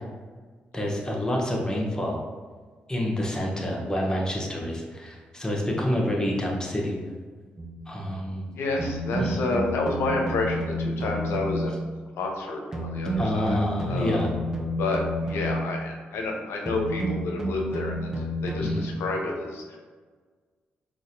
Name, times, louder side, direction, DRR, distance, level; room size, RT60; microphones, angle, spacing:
voice 1, 0.7-2.2 2.9-7.0 7.9-8.5 9.2-9.4 13.2-14.3 18.6-18.9, left 1 dB, 15° left, -2 dB, 0.9 m, -28 dB
sound 1, 7.6-7.9 8.8-11.8 12.7-15.7 16.7-18.8, equal, 15° right, 0.7 m, -30 dB
voice 2, 8.5-11.7 12.2-13.6 13.9-14.4 14.8-19.8, left 2 dB, 70° left, 1 dB, 0.6 m, -29 dB
3.9 x 2.5 x 2.7 m, 1.5 s
hypercardioid pair, 45°, 4 cm